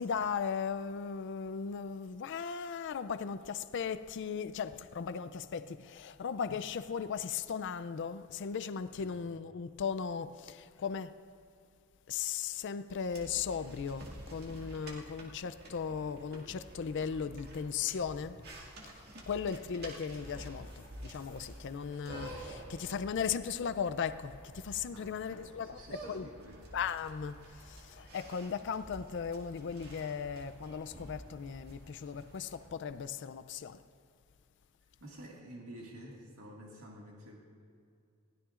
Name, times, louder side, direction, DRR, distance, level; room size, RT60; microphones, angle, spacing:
voice 1, 0.0-11.1 12.1-18.4 19.3-26.3 26.7-33.8, left 6 dB, 55° left, 0.4 m, -37 dB
sound 1, 13.1-32.7, right 1 dB, 50° right, 2.0 m, -50 dB
voice 2, 24.9-26.7 35.0-37.4, right 1 dB, 75° right, 2.0 m, -50 dB
21.0 x 16.0 x 2.5 m
head